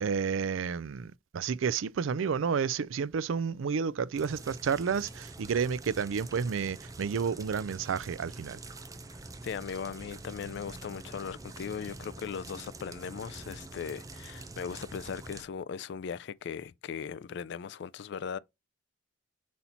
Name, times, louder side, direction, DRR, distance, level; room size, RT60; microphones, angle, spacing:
voice 1, 0.0-8.6, right 6 dB, 80° right, 0.4 m, -31 dB
sound 1, 4.1-15.4, right 2 dB, 20° right, 0.6 m, -46 dB
voice 2, 9.4-18.4, left 6 dB, 60° left, 0.3 m, -38 dB
5.6 x 4.2 x 4.3 m
head